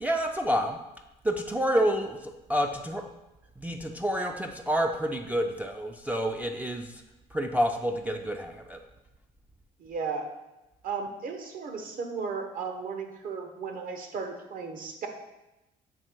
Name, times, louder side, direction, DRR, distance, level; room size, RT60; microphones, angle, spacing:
voice 1, 0.0-0.8 1.2-3.1 3.6-7.0 7.3-8.8, equal, 10° right, 2 dB, 0.3 m, -28 dB
voice 2, 9.8-10.2 10.8-15.1, right 5 dB, 55° right, 5 dB, 0.9 m, -35 dB
7.4 x 2.9 x 4.5 m, 0.98 s
cardioid pair, 110°, 17 cm